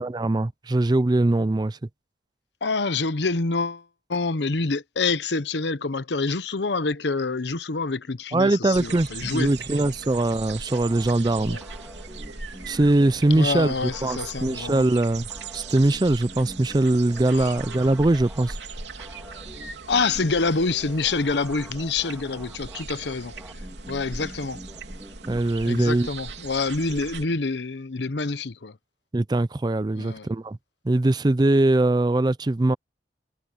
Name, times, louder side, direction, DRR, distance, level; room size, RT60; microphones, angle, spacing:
voice 1, 0.0-1.8 8.3-11.6 12.7-15.2 15.5-18.6 25.3-26.1 29.1-30.6 30.8-32.8, right 2 dB, 25° right, 0.4 m, -22 dB
voice 2, 2.6-3.8 4.1-9.9 11.4-11.6 13.3-14.9 17.3-17.5 19.9-23.3 23.9-24.6 25.6-28.8 29.9-30.3, left 3 dB, 75° left, 0.9 m, -27 dB
sound 1, 8.7-27.3, right 4 dB, 80° right, 3.2 m, -39 dB
sound 2, 10.7-25.4, equal, 10° right, 3.3 m, -46 dB
head